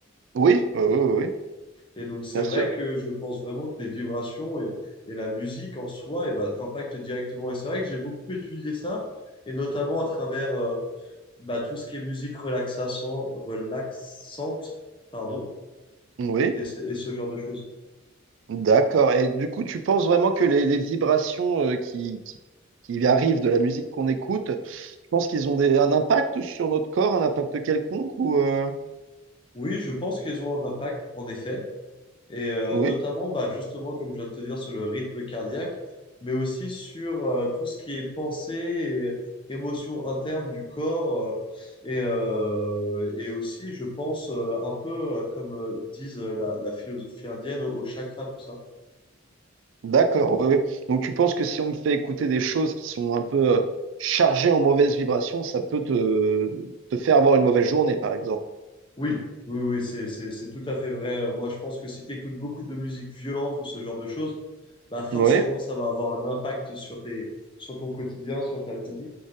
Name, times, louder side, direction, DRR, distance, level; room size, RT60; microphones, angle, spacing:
voice 1, 0.3-1.3 2.3-2.7 16.2-16.6 18.5-22.2 22.9-28.7 32.7-33.0 49.8-53.6 54.0-58.4 65.1-65.4, right 5 dB, 65° right, 8 dB, 0.3 m, -22 dB
voice 2, 2.0-4.7 5.1-9.1 9.5-10.8 11.4-14.7 15.1-15.5 16.5-17.6 29.5-31.6 32.3-35.7 36.2-39.2 39.5-48.6 59.0-64.3 64.9-67.3 67.6-69.1, left 1 dB, 25° left, -1 dB, 0.9 m, -30 dB
4.1 x 3.3 x 3.7 m, 1.1 s
head